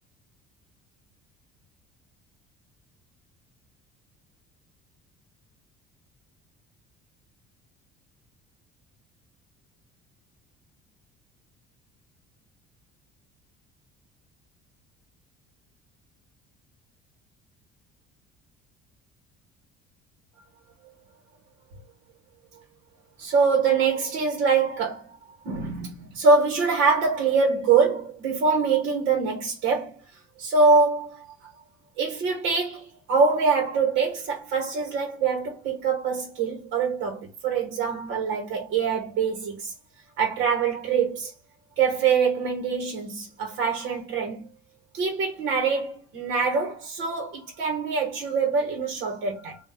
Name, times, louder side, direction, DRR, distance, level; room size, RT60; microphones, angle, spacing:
voice 1, 23.2-25.1 25.4-30.0 30.4-31.5 32.0-39.7 40.2-41.3 41.8-44.5 44.9-49.6, right 5 dB, 65° right, 1.3 m, -24 dB
3.7 x 2.6 x 4.3 m
cardioid pair, 150°, 20 cm